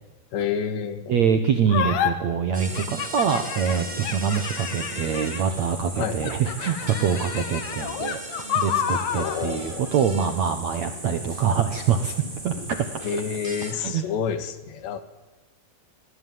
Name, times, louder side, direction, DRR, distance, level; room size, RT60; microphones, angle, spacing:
voice 1, 0.3-1.2 6.0-6.3 9.1-9.9 13.0-15.0, left 7 dB, 75° left, 11 dB, 3.9 m, -29 dB
voice 2, 1.1-8.2 8.6-12.2 12.4-12.8 13.7-14.0, right 7 dB, 65° right, 7 dB, 1.8 m, -24 dB
sound 1, 1.7-2.1 2.7-5.6 6.2-9.4, left 9 dB, 55° left, 2.5 m, -29 dB
sound 2, 2.5-13.7, right 1 dB, 10° right, 3.3 m, -37 dB
26.0 x 19.5 x 9.5 m, 1.2 s
omnidirectional pair, 5.1 m